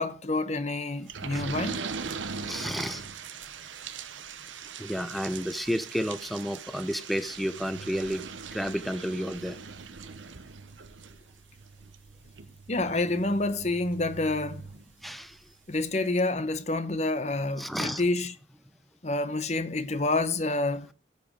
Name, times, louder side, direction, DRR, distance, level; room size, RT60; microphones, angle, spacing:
voice 1, 0.0-1.8 12.7-14.6 15.7-18.3 19.0-20.9, left 2 dB, 35° left, 0.9 m, -28 dB
sound 1, 1.1-15.4 15.8-15.9 16.2-16.3, right 5 dB, 85° right, 0.9 m, -41 dB
voice 2, 2.1-3.1 4.8-8.3 8.5-9.6 15.0-15.4 17.6-18.0, equal, ahead, 0.6 m, -31 dB
15.0 x 5.1 x 5.1 m
head